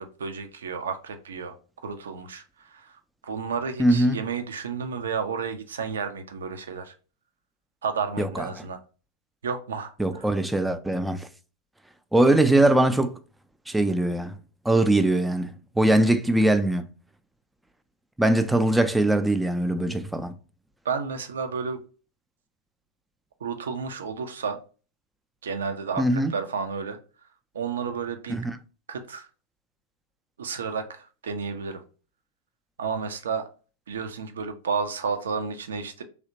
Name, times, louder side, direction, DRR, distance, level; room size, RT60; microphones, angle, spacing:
voice 1, 0.0-1.5 1.8-6.9 7.8-8.8 9.4-10.3 20.8-21.8 23.4-24.6 25.4-27.0 27.5-28.4 28.9-29.3 30.4-31.8 32.8-33.5 33.9-36.0, right 5 dB, 65° right, 0.5 m, -31 dB
voice 2, 3.8-4.2 8.2-8.4 10.0-11.3 12.1-13.1 13.7-14.3 14.7-16.9 18.2-20.3 26.0-26.3 28.3-28.6, right 1 dB, 5° right, 0.3 m, -21 dB
3.3 x 2.8 x 2.5 m
figure-of-eight pair, 90°, 0 cm